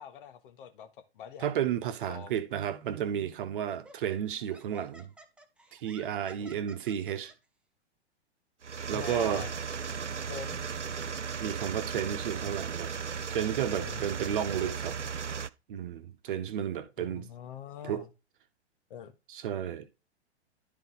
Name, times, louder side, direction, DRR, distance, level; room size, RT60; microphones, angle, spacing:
voice 1, 0.0-1.5 2.0-2.3 6.4-6.6 8.9-9.5 10.3-10.7 13.8-15.1 17.0-18.1 18.9-19.1, left 9 dB, 50° left, 1.5 m, -45 dB
voice 2, 1.4-5.1 5.7-7.3 8.9-9.5 11.4-12.9 13.3-15.0 15.7-17.3 17.8-18.0 19.3-19.9, right 9 dB, 50° right, 1.2 m, -32 dB
Laughter, 2.8-3.1 3.7-7.3, right 1 dB, 5° right, 0.7 m, -54 dB
sound 1, 8.6-15.5, right 6 dB, 90° right, 0.6 m, -36 dB
11.5 x 4.1 x 4.2 m
figure-of-eight pair, 110°, 34 cm